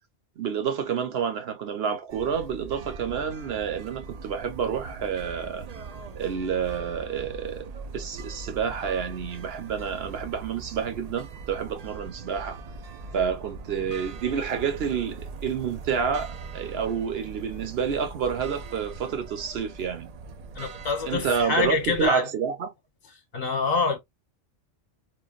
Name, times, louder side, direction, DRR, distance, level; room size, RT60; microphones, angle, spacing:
voice 1, 0.4-5.7 6.2-7.6 7.9-12.6 13.1-20.1 21.0-22.7, right 7 dB, 60° right, 0.9 m, -29 dB
sound 1, 2.1-22.1, right 4 dB, 80° right, 0.3 m, -41 dB
voice 2, 20.5-22.3 23.3-24.0, left 4 dB, 40° left, 1.0 m, -26 dB
3.1 x 2.2 x 2.3 m
omnidirectional pair, 1.3 m